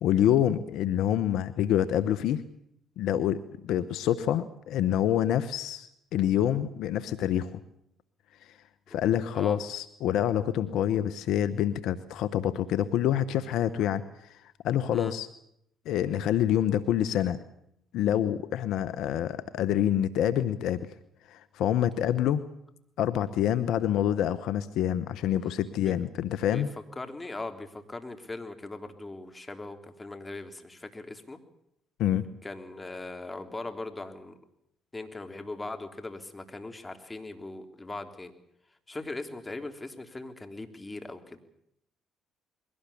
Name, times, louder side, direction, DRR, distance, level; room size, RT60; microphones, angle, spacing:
voice 1, 0.0-2.4 3.0-7.6 8.9-15.3 15.9-17.4 17.9-20.9 21.3-22.4 23.0-26.7 32.0-32.3, left 11 dB, 75° left, 13 dB, 1.0 m, -27 dB
voice 2, 26.9-31.4 32.4-34.4 34.9-38.3 38.9-41.4, left 2 dB, 20° left, 6 dB, 3.4 m, -40 dB
22.5 x 18.0 x 8.5 m, 0.74 s
supercardioid pair, 60°, 0 cm